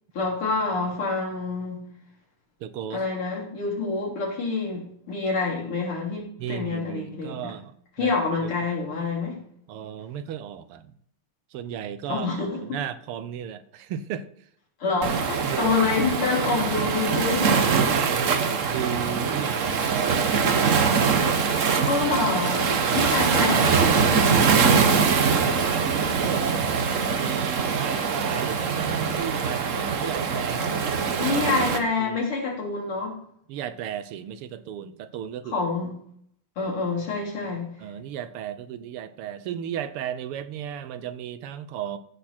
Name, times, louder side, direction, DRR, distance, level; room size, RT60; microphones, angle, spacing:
voice 1, 0.1-1.8 2.9-7.5 8.0-9.4 12.1-12.6 14.8-17.8 21.8-24.4 31.2-33.2 35.4-35.9 36.6-37.7, left 4 dB, 75° left, -3 dB, 4.4 m, -27 dB
voice 2, 2.6-3.0 6.4-8.1 8.4-8.5 9.7-10.9 11.5-12.3 12.6-14.2 15.4-15.7 17.8-20.4 20.7-21.3 22.8-23.3 24.8-25.8 26.2-30.9 31.2-32.2 33.5-35.6 37.8-42.0, right 9 dB, 85° right, 12 dB, 1.7 m, -35 dB
Waves surf, 15.0-31.8, right 5 dB, 50° right, 1.0 m, -23 dB
14.5 x 6.8 x 4.3 m, 0.67 s
omnidirectional pair, 2.4 m